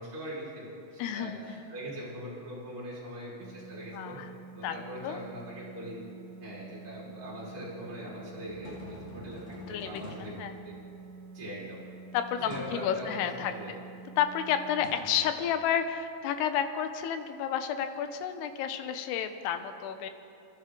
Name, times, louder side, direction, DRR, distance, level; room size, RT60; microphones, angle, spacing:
voice 1, 0.0-4.2 4.5-6.0 6.4-10.3 10.6-10.7 11.3-11.8 12.4-13.7, equal, 20° right, -8 dB, 4.9 m, -41 dB
voice 2, 1.0-1.4 3.9-4.3 4.6-5.2 9.7-10.5 12.1-13.8 14.2-20.1, left 9 dB, 75° left, 8 dB, 2.6 m, -31 dB
sound 1, 3.4-14.8, right 5 dB, 85° right, 2.9 m, -48 dB
sound 2, 8.4-11.3 12.5-12.9 14.8-15.9, left 2 dB, 45° left, 2.5 m, -47 dB
27.0 x 12.0 x 3.8 m, 2.7 s
omnidirectional pair, 5.1 m